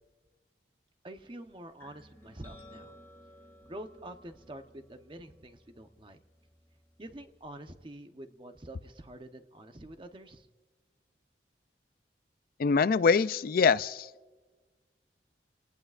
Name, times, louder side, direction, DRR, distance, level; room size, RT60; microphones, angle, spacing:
voice 1, 1.0-3.0 3.7-6.2 7.0-10.5, right 1 dB, 30° right, 7 dB, 0.9 m, -47 dB
sound 1, 1.8-7.5, left 1 dB, 15° left, 2.6 m, -57 dB
voice 2, 12.6-14.1, left 5 dB, 55° left, 16 dB, 0.4 m, -24 dB
27.5 x 19.0 x 2.5 m, 1.3 s
head